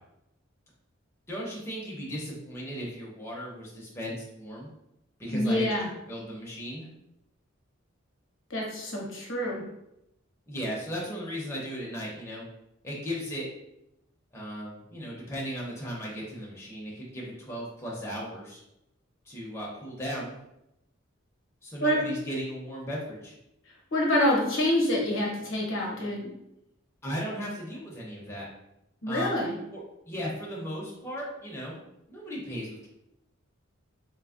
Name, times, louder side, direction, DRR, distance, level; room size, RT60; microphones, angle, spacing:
voice 1, 1.3-4.7 5.2-6.9 10.5-12.4 12.8-13.5 14.3-18.6 19.3-20.4 21.6-23.3 27.0-28.5 29.1-29.4 29.7-31.8 32.1-32.9, equal, 10° left, -4 dB, 0.5 m, -36 dB
voice 2, 5.3-5.9 8.5-9.6 21.8-22.0 23.9-26.3 29.0-29.6, left 1 dB, 65° left, -2 dB, 0.7 m, -26 dB
3.3 x 2.0 x 2.4 m, 0.85 s
head